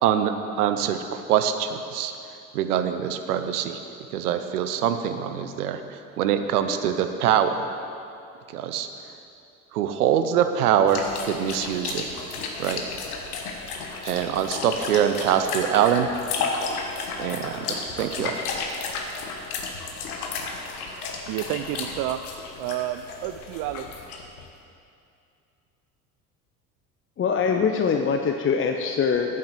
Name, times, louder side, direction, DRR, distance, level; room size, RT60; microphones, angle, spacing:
voice 1, 0.0-2.1 2.5-3.8 4.1-7.6 8.5-8.9 9.7-12.1 12.6-12.8 14.0-16.1 17.2-18.4, right 9 dB, 80° right, 8 dB, 0.8 m, -24 dB
sound 1, 10.9-24.4, left 4 dB, 75° left, 1.3 m, -33 dB
voice 2, 21.3-22.2 22.6-23.9, right 13 dB, 50° right, 10 dB, 0.5 m, -30 dB
voice 3, 27.2-29.4, left 6 dB, 30° left, 4 dB, 0.7 m, -23 dB
9.1 x 7.7 x 7.6 m, 2.6 s
hypercardioid pair, 65°, 44 cm